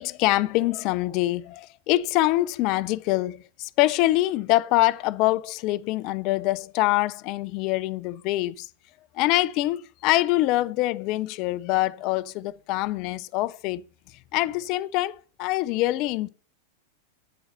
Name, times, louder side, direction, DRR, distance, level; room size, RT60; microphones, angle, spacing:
voice 1, 0.0-8.7 9.1-13.8 14.3-16.3, left 17 dB, 40° left, 0.5 m, -24 dB
8.7 x 7.8 x 5.5 m
figure-of-eight pair, 90°, 0 cm